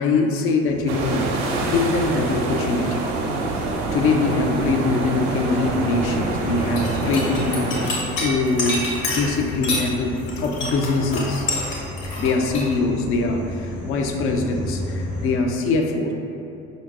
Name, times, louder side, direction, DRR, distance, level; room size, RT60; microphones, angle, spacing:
voice 1, 0.0-1.4 1.6-3.0 3.9-11.5 12.2-16.1, left 3 dB, 40° left, 3 dB, 0.4 m, -23 dB
sound 1, 0.7-15.3, left 2 dB, 80° left, 1.1 m, -35 dB
sound 2, 0.9-7.9, right 2 dB, 45° right, 0.5 m, -26 dB
sound 3, 6.6-9.9 10.2-12.7, left 2 dB, 60° left, 0.9 m, -27 dB
5.0 x 2.7 x 2.4 m, 2.7 s
figure-of-eight pair, 55°, 38 cm